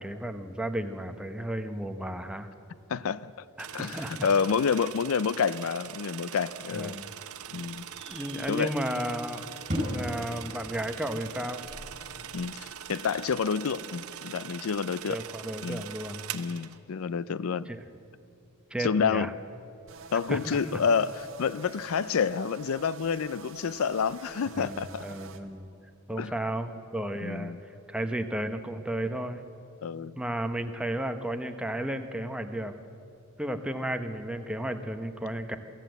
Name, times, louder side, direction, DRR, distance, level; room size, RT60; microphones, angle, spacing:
voice 1, 0.0-2.5 3.6-4.3 6.7-7.1 8.1-9.5 9.9-11.6 15.1-16.2 17.7-17.8 18.7-19.3 20.3-20.6 24.6-25.7 26.1-29.4 30.2-32.7 33.4-35.6, right 1 dB, 5° right, 7 dB, 0.9 m, -33 dB
voice 2, 2.9-3.3 3.7-7.0 7.5-7.9 8.5-8.7 12.3-15.2 15.6-15.8 16.3-17.7 18.8-19.3 20.1-25.1 26.2-26.3 27.2-27.6 29.8-30.2, left 6 dB, 70° left, 18 dB, 0.4 m, -29 dB
sound 1, 3.6-16.8, right 9 dB, 75° right, 0.8 m, -42 dB
sound 2, 7.3-12.4, equal, 30° right, 6.1 m, -39 dB
sound 3, 19.9-25.4, right 4 dB, 60° right, 1.4 m, -47 dB
23.0 x 15.0 x 7.9 m, 2.6 s
head